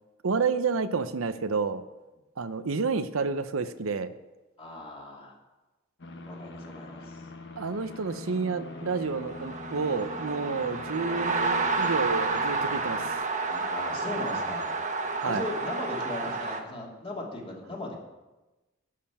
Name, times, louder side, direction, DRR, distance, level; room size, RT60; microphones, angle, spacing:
voice 1, 0.2-1.8 2.4-4.1 7.6-13.0 15.2-15.4, right 4 dB, 85° right, 11 dB, 0.7 m, -29 dB
voice 2, 4.6-5.4 6.2-7.3 10.5-10.7 13.5-14.7 15.2-17.9, left 2 dB, 30° left, -2 dB, 2.8 m, -38 dB
sound 1, 6.0-13.1, left 2 dB, 60° left, 1.2 m, -43 dB
sound 2, 9.0-16.6, right 3 dB, 40° right, 1.3 m, -30 dB
11.0 x 6.6 x 8.9 m, 1.1 s
head